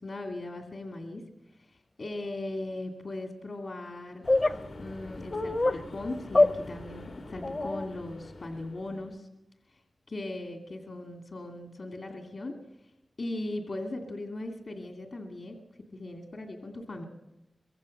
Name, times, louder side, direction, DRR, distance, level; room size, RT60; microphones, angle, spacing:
voice 1, 0.0-4.3 4.8-9.3 9.7-9.8 10.1-12.6 13.2-15.6 15.9-17.0, left 2 dB, 65° left, 2 dB, 2.4 m, -38 dB
sound 1, 4.2-9.2, left 2 dB, 85° left, 2.5 m, -46 dB
sound 2, 4.3-4.6 5.3-5.8 6.3-6.5 7.4-7.9, left 2 dB, 45° left, 1.0 m, -24 dB
24.5 x 22.5 x 6.6 m, 0.94 s
wide cardioid pair, 75°, 0 cm